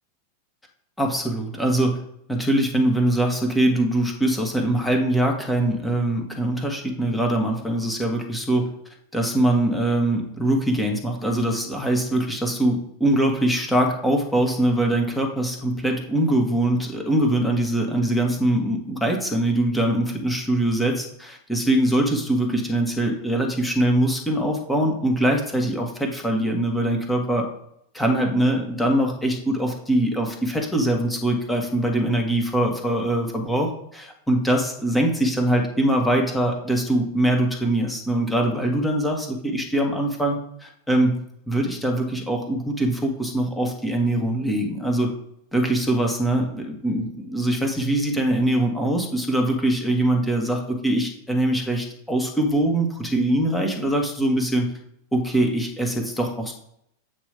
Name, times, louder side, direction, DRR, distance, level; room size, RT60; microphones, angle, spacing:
voice 1, 1.0-2.0 2.3-8.7 9.1-27.4 27.9-41.2 41.5-45.1 45.5-54.7 55.1-56.5, right 1 dB, 5° left, 1 dB, 1.8 m, -22 dB
8.8 x 3.2 x 5.1 m, 0.74 s
figure-of-eight pair, 90°, 0 cm